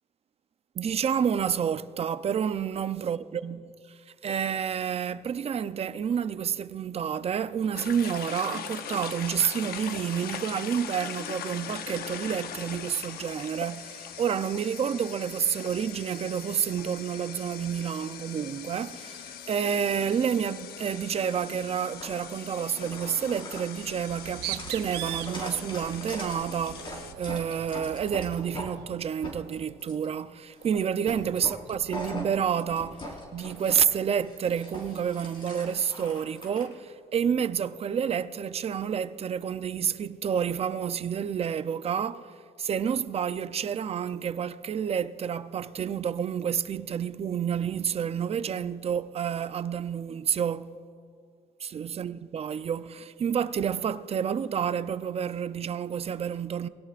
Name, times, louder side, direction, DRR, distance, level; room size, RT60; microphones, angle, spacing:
voice 1, 0.8-3.7 4.2-42.3 42.6-50.7 51.6-56.7, right 8 dB, 35° right, 0.6 m, -29 dB
sound 1, 7.7-27.1, left 9 dB, 65° left, 0.9 m, -41 dB
sound 2, 21.1-21.4 22.0-22.4 22.7-28.7 29.0-30.1 30.5-30.8 31.0-33.8 34.1-36.6, equal, 30° left, 4.7 m, -41 dB
Bird, 24.0-28.9, right 14 dB, 80° right, 0.6 m, -40 dB
23.5 x 17.5 x 2.5 m
cardioid pair, 110°, 17 cm